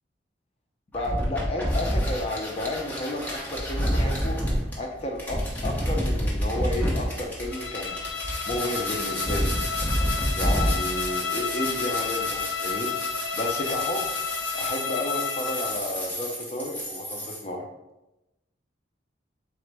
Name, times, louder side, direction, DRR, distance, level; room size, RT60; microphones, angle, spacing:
voice 1, 0.9-4.4 4.8-8.0 8.5-9.5 10.4-12.9 13.3-14.1 14.5-17.6, left 1 dB, 35° left, 1 dB, 0.5 m, -32 dB
sound 1, 0.9-17.4, equal, 10° left, 0.9 m, -29 dB
Bowed string instrument, 7.5-15.9, left 7 dB, 85° left, 0.5 m, -31 dB
4.0 x 3.9 x 3.4 m, 0.95 s
head